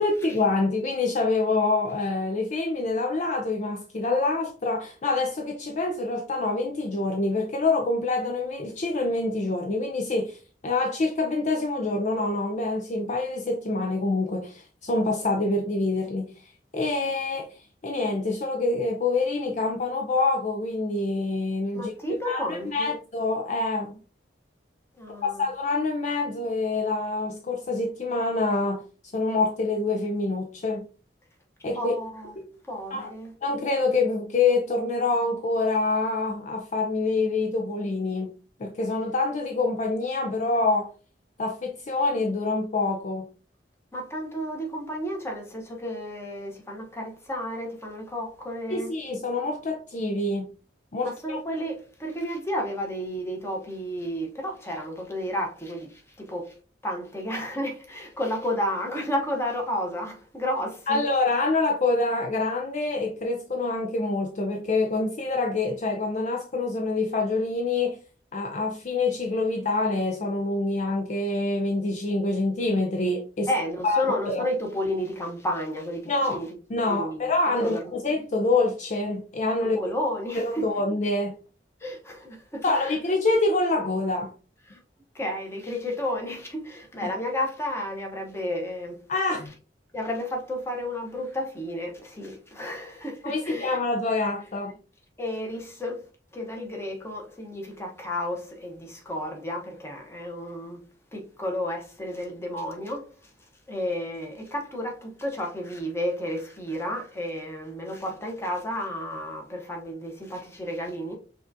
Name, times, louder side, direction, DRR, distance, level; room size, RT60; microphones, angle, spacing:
voice 1, 0.0-10.4 10.6-16.3 16.7-21.9 22.2-23.9 25.2-28.8 29.1-30.8 31.6-31.9 32.4-32.5 32.9-33.1 33.4-38.3 38.6-40.9 41.4-43.3 48.7-50.5 50.9-51.4 60.9-68.0 68.3-73.5 73.8-74.0 74.3-74.4 76.1-76.4 76.7-79.8 80.3-81.4 82.6-84.3 89.1-89.5 93.2-94.7, left 3 dB, 40° left, 0.5 m, -26 dB
voice 2, 21.7-22.9 25.0-25.4 31.7-32.3 32.7-33.3 43.9-48.9 51.0-56.6 56.8-61.0 73.5-76.5 76.8-77.3 77.6-77.8 79.6-80.6 81.8-83.0 84.7-84.8 85.1-89.0 89.9-93.8 95.2-100.8 101.1-103.3 103.7-111.1, left 1 dB, 15° left, 1.0 m, -32 dB
5.7 x 2.5 x 2.6 m
head